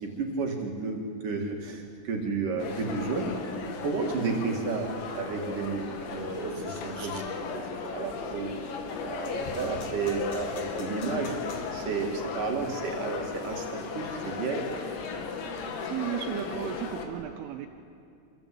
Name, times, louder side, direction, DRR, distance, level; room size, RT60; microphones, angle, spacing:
voice 1, 0.0-1.0 1.2-3.3 3.8-7.3 7.5-8.5 9.0-11.3 11.7-14.6, right 4 dB, 50° right, 1 dB, 3.2 m, -32 dB
sound 1, 2.6-17.1, left 5 dB, 65° left, 4.1 m, -36 dB
voice 2, 15.9-17.7, right 11 dB, 80° right, 4 dB, 3.3 m, -34 dB
26.0 x 26.0 x 8.7 m, 2.5 s
omnidirectional pair, 5.9 m